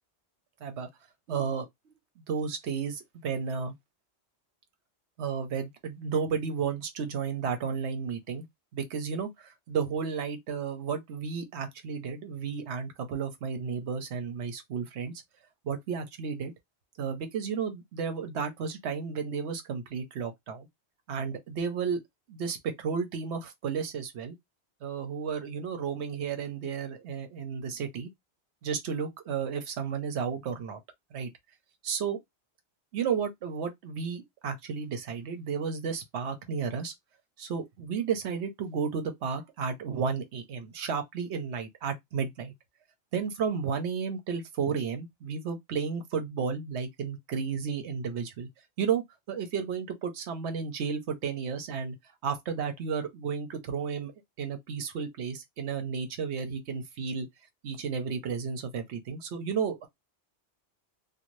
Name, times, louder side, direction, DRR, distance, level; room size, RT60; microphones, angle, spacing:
voice 1, 1.3-1.7 2.2-3.7 5.2-8.5 8.7-15.1 15.6-16.5 17.0-20.7 21.1-22.0 22.3-24.4 24.8-28.1 28.6-30.8 31.1-31.3 31.8-32.2 32.9-36.9 37.4-42.5 43.1-48.5 48.8-52.0 52.2-54.1 54.4-57.3 57.6-59.9, right 6 dB, 80° right, 1.0 m, -33 dB
2.6 x 2.4 x 3.0 m
omnidirectional pair, 1.1 m